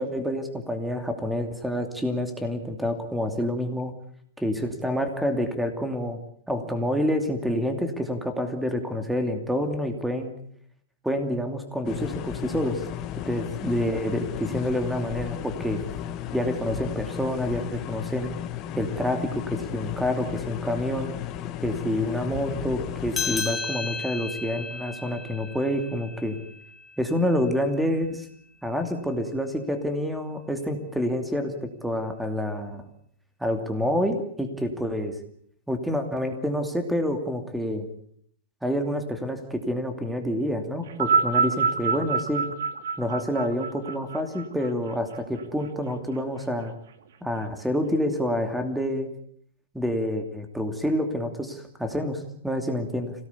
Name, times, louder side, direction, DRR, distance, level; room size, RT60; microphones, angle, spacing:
voice 1, 0.0-3.9 4.4-6.2 6.5-10.3 11.0-12.8 13.2-15.8 16.3-18.3 18.7-21.1 21.6-26.4 27.0-28.2 28.6-32.8 33.4-35.1 35.7-37.9 38.6-42.4 43.0-46.7 47.2-49.1 49.7-53.1, equal, 5° right, 7 dB, 2.7 m, -28 dB
sound 1, 11.8-23.4, left 11 dB, 30° left, 1.8 m, -34 dB
sound 2, 23.1-28.0, left 4 dB, 15° left, 2.4 m, -34 dB
sound 3, 40.9-45.4 46.3-46.4, right 5 dB, 75° right, 2.8 m, -26 dB
26.5 x 18.0 x 8.4 m, 0.66 s
supercardioid pair, 160°, 0 cm